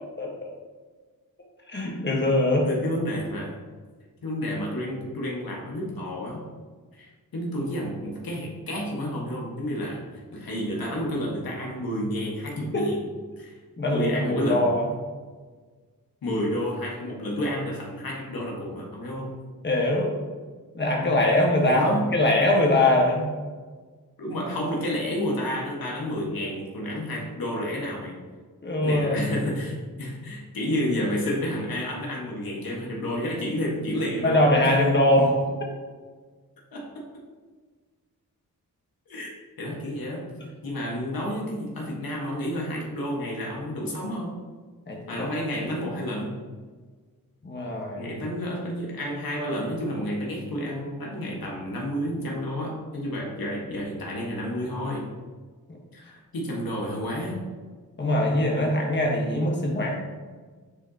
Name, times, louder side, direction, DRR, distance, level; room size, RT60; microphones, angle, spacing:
voice 1, 0.2-0.5 1.7-2.7 12.7-12.9 13.8-14.9 19.6-20.1 20.7-23.3 28.6-29.3 34.2-35.4 44.9-45.3 47.4-48.1 58.0-59.9, left 1 dB, 30° left, -1 dB, 1.4 m, -22 dB
voice 2, 2.6-3.6 4.2-6.5 7.0-10.0 10.3-13.0 13.4-13.6 13.9-14.7 16.2-19.3 21.6-22.1 24.2-28.2 28.8-34.8 36.7-37.2 39.1-39.3 39.6-40.3 40.6-44.4 45.1-46.4 48.0-55.1 55.9-57.4, equal, 80° left, -2 dB, 1.7 m, -30 dB
9.5 x 4.9 x 2.9 m, 1.4 s
wide cardioid pair, 90°, 35 cm